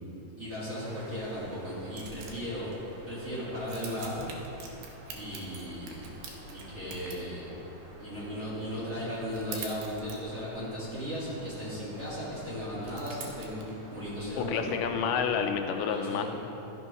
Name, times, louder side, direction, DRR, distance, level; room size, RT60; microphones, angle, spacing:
voice 1, 0.4-2.7 3.1-4.3 5.1-6.1 6.5-7.5 8.0-14.8 15.9-16.2, equal, 20° right, -10 dB, 2.5 m, -36 dB
sound 1, 0.8-15.6, right 1 dB, 50° right, 2.1 m, -50 dB
sound 2, 1.9-2.5 2.9-3.0 3.6-7.2 9.1-10.6 11.6-11.7 12.8-13.7, right 5 dB, 90° right, 2.6 m, -45 dB
voice 2, 14.4-16.2, left 7 dB, 80° left, 5 dB, 2.2 m, -29 dB
12.5 x 6.2 x 5.5 m, 3.0 s
omnidirectional pair, 3.8 m